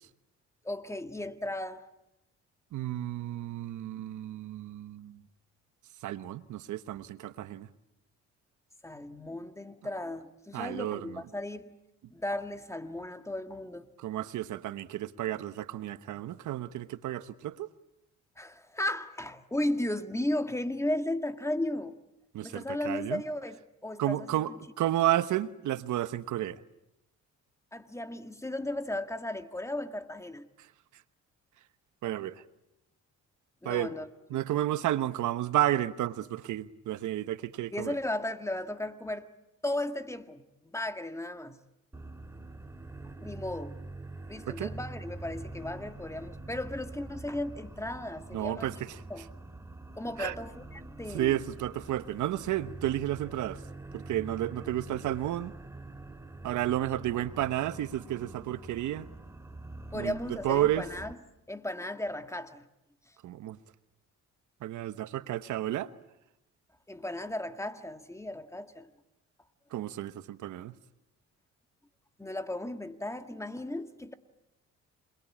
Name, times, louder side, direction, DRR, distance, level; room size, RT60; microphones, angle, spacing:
voice 1, 0.6-1.9 8.8-11.7 12.1-13.9 18.4-22.0 22.4-24.6 27.7-30.5 33.6-34.4 37.7-39.3 39.6-41.6 43.2-43.8 44.3-48.8 49.1-49.3 50.0-51.4 59.9-61.2 61.5-62.7 66.9-68.9 72.2-74.1, left 1 dB, 10° left, 1.8 m, -35 dB
voice 2, 2.7-5.2 6.0-7.7 10.5-11.1 14.0-17.7 22.3-23.2 24.0-24.5 24.8-26.6 32.0-32.4 33.6-33.9 34.3-38.0 44.5-44.7 48.3-49.0 50.2-50.3 51.1-53.6 53.9-55.5 56.4-59.1 59.9-60.8 63.2-63.6 64.6-65.9 69.7-70.7, right 13 dB, 75° right, 1.0 m, -31 dB
sound 1, 41.9-61.1, right 2 dB, 10° right, 2.2 m, -45 dB
28.0 x 21.5 x 8.6 m
cardioid pair, 90°, 30 cm